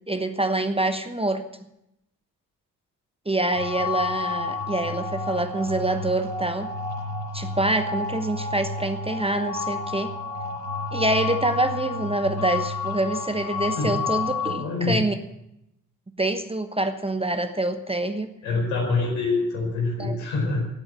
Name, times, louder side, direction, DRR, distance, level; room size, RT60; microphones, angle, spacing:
voice 1, 0.1-1.4 3.3-6.7 7.3-10.1 10.9-15.1 16.2-18.3 20.0-20.2, right 2 dB, 10° right, 8 dB, 1.1 m, -26 dB
sound 1, 3.5-14.5, left 4 dB, 75° right, 6.5 m, -30 dB
voice 2, 14.6-14.9 18.4-20.7, left 3 dB, 70° left, 1 dB, 4.9 m, -25 dB
17.0 x 8.7 x 7.7 m, 0.84 s
figure-of-eight pair, 45°, 48 cm